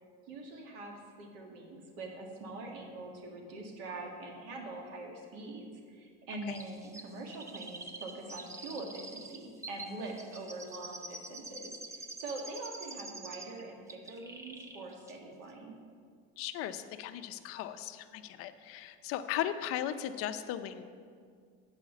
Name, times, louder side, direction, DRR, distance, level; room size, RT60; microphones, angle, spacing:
voice 1, 0.3-15.8, right 2 dB, 85° right, 1 dB, 1.7 m, -44 dB
Chirp tweet, 6.5-13.6 13.9-14.8 15.1-15.2, right 2 dB, 10° right, 0.4 m, -46 dB
voice 2, 16.4-20.8, left 11 dB, 50° left, 10 dB, 0.5 m, -37 dB
8.6 x 4.9 x 7.1 m, 2.1 s
cardioid pair, 155°, 29 cm